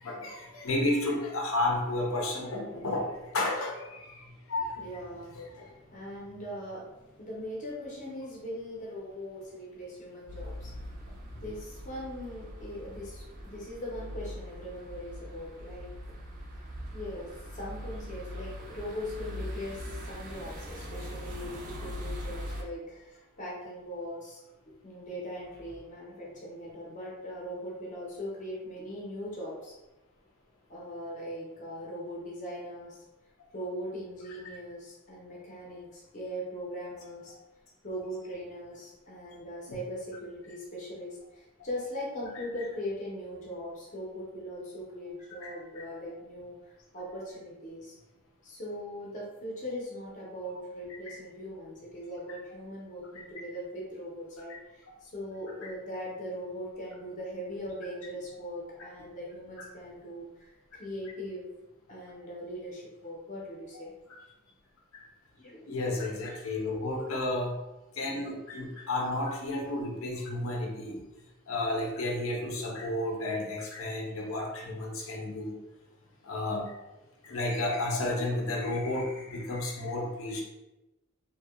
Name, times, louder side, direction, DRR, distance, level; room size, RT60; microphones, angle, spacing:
voice 1, 0.0-3.1 3.3-4.2 4.5-4.8 5.3-5.7 39.7-39.8 45.4-45.5 51.1-51.2 53.4-53.5 55.6-55.7 59.6-59.7 65.7-67.5 68.0-71.0 71.5-75.6 76.2-76.7 77.2-80.4, left 2 dB, 80° left, 0 dB, 0.6 m, -32 dB
voice 2, 4.8-10.7 11.3-15.9 16.9-24.4 24.8-29.7 30.7-33.0 33.5-37.3 37.8-47.9 48.4-61.5 61.9-63.9 65.3-65.6, equal, 35° left, -4 dB, 0.6 m, -40 dB
sound 1, 10.3-22.6, equal, 40° right, 0.4 m, -41 dB
2.7 x 2.1 x 2.3 m, 1.0 s
head